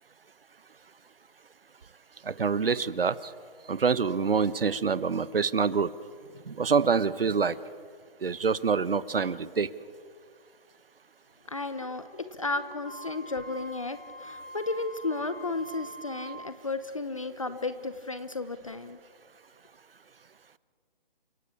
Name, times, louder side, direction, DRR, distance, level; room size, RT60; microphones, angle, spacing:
voice 1, 2.3-3.2 3.7-5.9 6.5-7.6 8.2-9.7, right 5 dB, 70° right, 17 dB, 1.1 m, -26 dB
voice 2, 11.5-19.0, left 3 dB, 35° left, 12 dB, 0.8 m, -33 dB
Wind instrument woodwind instrument, 12.8-16.6, right 1 dB, 85° left, 5.2 m, -44 dB
29.5 x 17.5 x 8.6 m, 2.1 s
hypercardioid pair, 180°, 29 cm